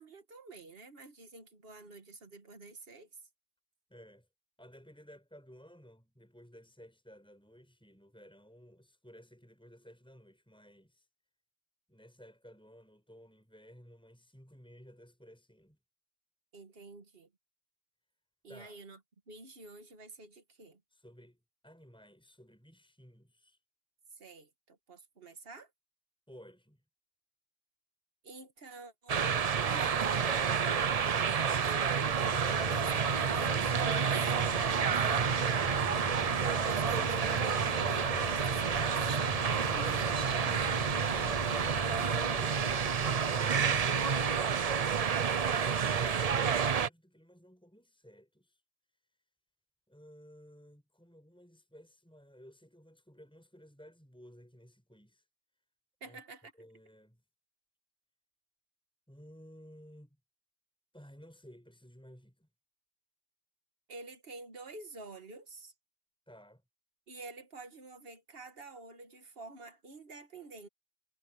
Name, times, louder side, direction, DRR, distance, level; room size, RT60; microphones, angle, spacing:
voice 1, 0.0-3.2 16.5-17.3 18.4-19.0 19.3-20.8 24.1-25.7 28.2-30.7 31.6-35.2 36.4-40.9 56.0-56.5 63.9-65.7 67.1-70.7, right 3 dB, 70° right, 1.9 m, -49 dB
voice 2, 3.9-4.3 4.6-11.1 11.9-15.8 18.5-18.8 20.9-23.6 26.3-26.8 42.3-48.6 49.9-55.3 56.0-56.2 56.6-57.2 59.1-60.2 60.9-62.5 66.3-66.6, equal, 5° left, 5.5 m, -56 dB
sound 1, 29.1-46.9, right 6 dB, 45° right, 0.7 m, -29 dB
sound 2, 32.2-44.4, left 9 dB, 50° left, 0.7 m, -43 dB
omnidirectional pair, 1.0 m